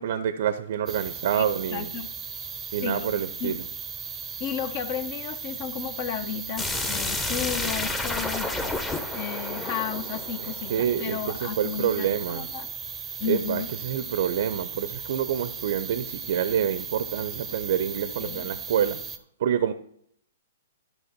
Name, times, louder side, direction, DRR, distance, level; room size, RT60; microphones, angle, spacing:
voice 1, 0.0-1.9 2.7-3.6 10.7-12.5 13.3-19.0 19.4-19.7, right 9 dB, 55° right, 12 dB, 0.6 m, -27 dB
sound 1, 0.9-19.2, right 7 dB, 15° right, 0.8 m, -37 dB
voice 2, 1.3-2.1 2.8-3.1 3.4-3.5 4.4-12.7 13.2-13.7 18.2-18.5, left 8 dB, 45° left, 11 dB, 1.0 m, -33 dB
sound 2, 6.6-11.3, left 2 dB, 10° left, 1.0 m, -31 dB
12.0 x 6.1 x 4.4 m, 0.67 s
hypercardioid pair, 125°, 0 cm